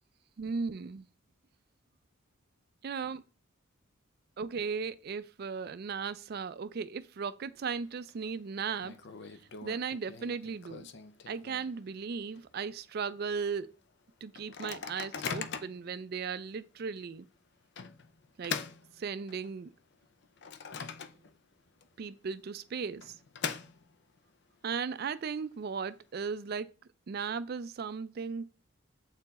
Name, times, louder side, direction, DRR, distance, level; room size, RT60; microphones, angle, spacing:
voice 1, 0.4-1.1 2.8-3.2 4.4-8.9 9.6-10.9 11.3-13.7 14.2-17.3 18.4-18.6 19.0-19.7 22.0-23.2 24.6-26.7 27.1-28.4, right 5 dB, 50° right, 0.4 m, -36 dB
Microwave oven, 7.6-8.1 8.4-8.5 8.8-11.9 12.3-12.4 12.7-13.0 13.5-13.6 14.3-15.9 16.5-16.6 17.8-19.6 20.0-21.5 21.8-21.9 22.8-24.2, left 6 dB, 55° left, 0.6 m, -41 dB
7.9 x 4.5 x 4.1 m
head